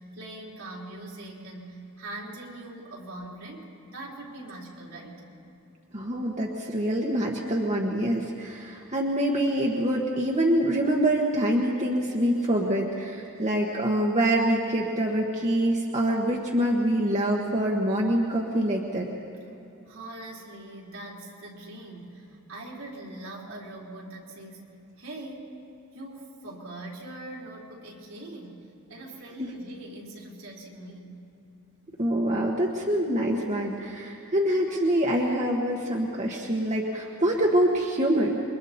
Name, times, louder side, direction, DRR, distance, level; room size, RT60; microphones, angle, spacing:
voice 1, 0.0-5.2 19.9-24.7 25.0-25.6 25.9-31.3, right 1 dB, 70° right, -3 dB, 3.9 m, -42 dB
voice 2, 5.9-19.1 32.0-38.3, right 1 dB, 30° right, -2 dB, 1.5 m, -25 dB
28.5 x 23.0 x 4.3 m, 2.8 s
head